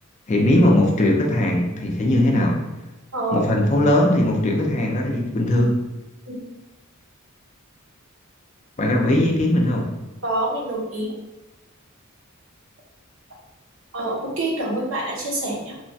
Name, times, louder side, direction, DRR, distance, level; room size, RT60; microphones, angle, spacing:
voice 1, 0.3-2.6 3.3-5.8 8.8-9.9, left 1 dB, 35° left, 1 dB, 0.4 m, -19 dB
voice 2, 3.1-3.4 6.3-6.4 10.2-11.1 13.9-15.7, right 2 dB, 75° right, -2 dB, 0.8 m, -26 dB
3.0 x 2.1 x 2.6 m, 1.1 s
head